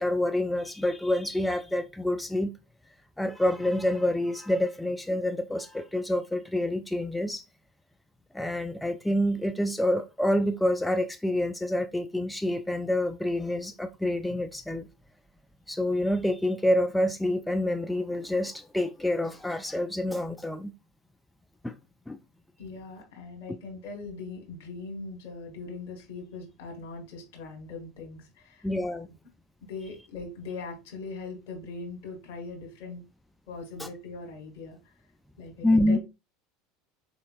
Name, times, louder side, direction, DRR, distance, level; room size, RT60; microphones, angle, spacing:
voice 1, 0.0-2.5 3.2-7.4 8.3-14.9 15.7-20.7 21.6-21.8 22.1-22.2 28.6-29.1 33.8-33.9 35.6-36.0, left 1 dB, 5° left, 0.3 m, -27 dB
voice 2, 22.6-29.0 29.7-33.0 33.5-34.8 35.4-36.0, left 3 dB, 65° left, 1.3 m, -40 dB
4.3 x 2.8 x 2.4 m
figure-of-eight pair, 75°, 0 cm